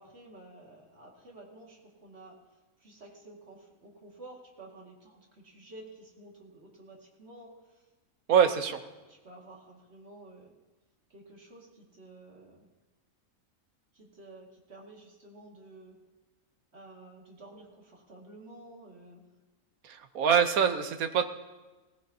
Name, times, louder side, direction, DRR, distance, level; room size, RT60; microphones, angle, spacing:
voice 1, 0.0-2.4 2.8-7.9 9.1-10.6 11.1-12.7 13.9-16.0 16.7-19.3, right 2 dB, 50° right, -1 dB, 2.4 m, -51 dB
voice 2, 8.3-8.8 19.8-21.2, right 7 dB, 85° right, 8 dB, 1.3 m, -24 dB
17.5 x 15.5 x 2.8 m, 1.2 s
omnidirectional pair, 1.5 m